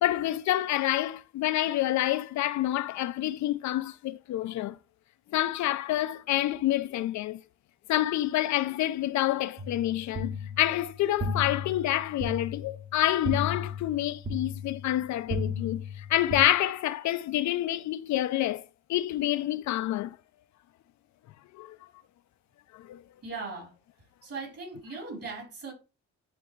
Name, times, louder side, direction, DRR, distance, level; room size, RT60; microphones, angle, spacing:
voice 1, 0.0-4.8 5.3-7.4 7.9-18.6 18.9-20.2 21.5-21.8 22.7-23.0, left 14 dB, 70° left, 0.5 m, -28 dB
sound 1, 9.6-16.4, left 3 dB, 35° right, 1.2 m, -35 dB
voice 2, 23.2-23.7 24.2-25.7, right 4 dB, 50° right, 3.9 m, -38 dB
10.0 x 3.4 x 3.2 m
cardioid pair, 90°, 30 cm